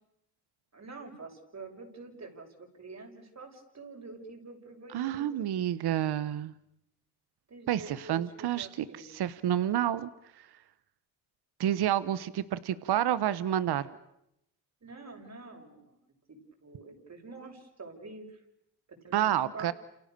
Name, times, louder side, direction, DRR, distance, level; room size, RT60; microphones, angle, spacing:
voice 1, 0.7-5.7 7.5-9.2 14.8-16.0 16.3-18.4 18.9-19.7, right 3 dB, 40° right, 3 dB, 7.2 m, -47 dB
voice 2, 4.9-6.5 7.7-10.1 10.3-10.5 11.6-13.9 19.1-19.7, right 11 dB, 75° right, 15 dB, 1.2 m, -29 dB
29.0 x 28.5 x 6.9 m, 0.83 s
cardioid pair, 65°, 39 cm